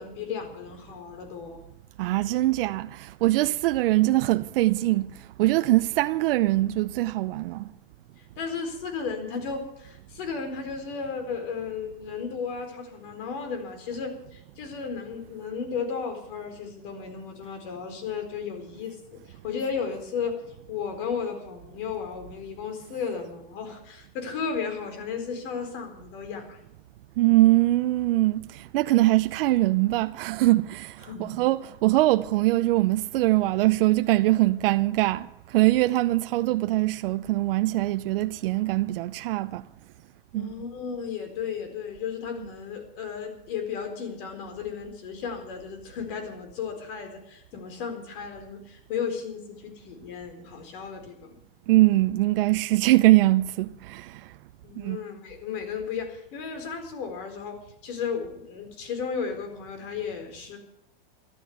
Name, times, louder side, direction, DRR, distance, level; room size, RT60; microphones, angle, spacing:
voice 1, 0.0-1.6 8.4-20.4 20.7-26.6 31.0-31.5 40.3-51.4 54.6-60.6, left 6 dB, 65° left, 4.4 m, -34 dB
voice 2, 2.0-7.7 27.2-39.7 40.3-40.5 42.4-42.5 51.7-54.3 54.8-55.0, right 17 dB, 70° right, 0.6 m, -22 dB
13.5 x 12.0 x 8.0 m
supercardioid pair, 130°, 29 cm